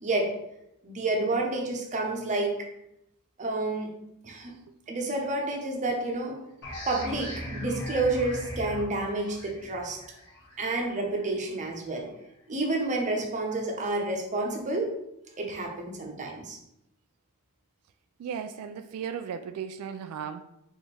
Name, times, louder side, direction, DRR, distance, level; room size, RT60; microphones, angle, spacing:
voice 1, 0.0-0.3 0.8-2.5 3.4-3.9 4.2-4.5 4.9-6.4 6.9-10.0 10.6-12.1 12.5-14.9 15.4-16.6, right 2 dB, 35° right, 1 dB, 0.8 m, -29 dB
sound 1, 6.6-11.9, equal, 50° left, 1.4 m, -40 dB
voice 2, 18.2-20.4, right 7 dB, 90° right, 10 dB, 0.3 m, -36 dB
4.3 x 3.4 x 3.3 m, 0.80 s
head